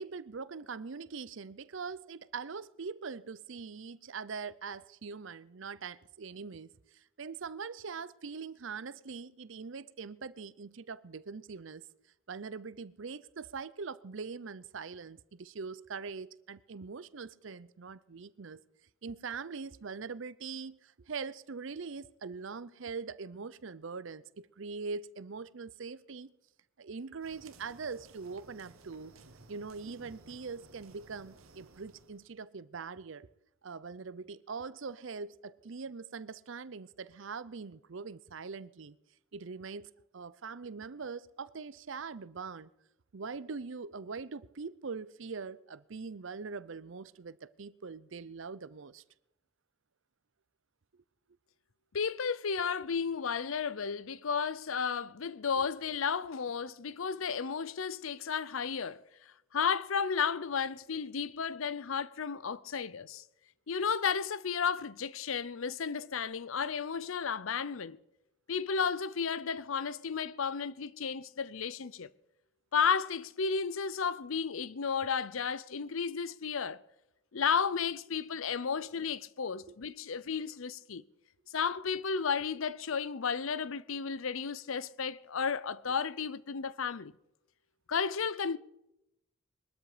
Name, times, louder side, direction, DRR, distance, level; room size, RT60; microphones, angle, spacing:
voice 1, 0.0-11.9 12.3-18.6 19.0-26.3 26.8-29.1 29.5-33.3 33.6-39.0 39.3-42.7 43.1-49.0 79.7-79.8, right 5 dB, 65° right, 0.6 m, -42 dB
sound 1, 27.2-32.3, right 3 dB, 90° right, 1.4 m, -57 dB
voice 2, 51.9-59.0 59.5-63.2 63.7-68.0 68.5-72.1 72.7-76.8 77.3-81.0 81.5-87.1 87.9-88.6, left 6 dB, 75° left, 0.6 m, -33 dB
21.5 x 13.0 x 4.9 m
head